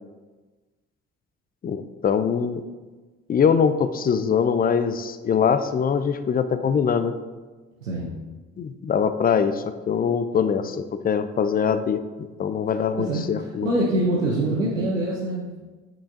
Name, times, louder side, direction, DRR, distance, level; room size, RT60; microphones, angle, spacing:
voice 1, 1.6-2.6 3.3-7.1 8.6-12.0 12.4-13.7, left 7 dB, 25° left, 11 dB, 0.4 m, -23 dB
voice 2, 7.8-8.1 13.0-15.5, right 1 dB, 85° right, -5 dB, 0.8 m, -25 dB
8.4 x 5.9 x 2.6 m, 1.3 s
figure-of-eight pair, 40°, 38 cm